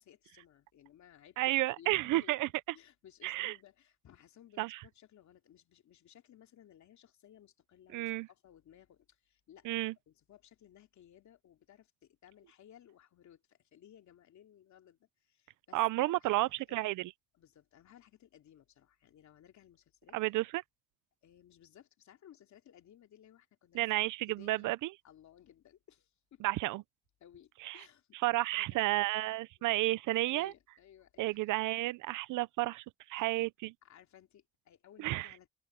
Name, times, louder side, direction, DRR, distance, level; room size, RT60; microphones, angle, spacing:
voice 1, 0.0-17.0 17.3-20.2 21.2-23.9 24.3-24.7 25.0-26.4 27.2-28.9 30.3-31.6 33.2-33.4 33.8-35.5, left 10 dB, 70° left, 2.9 m, -60 dB
voice 2, 1.4-2.5 3.2-3.6 4.6-4.8 7.9-8.3 9.6-9.9 15.7-17.1 20.1-20.6 23.7-24.9 26.4-26.8 27.6-27.8 28.2-30.5 31.2-33.7 35.0-35.3, right 18 dB, 85° right, 0.6 m, -32 dB
cardioid pair, 90°, 30 cm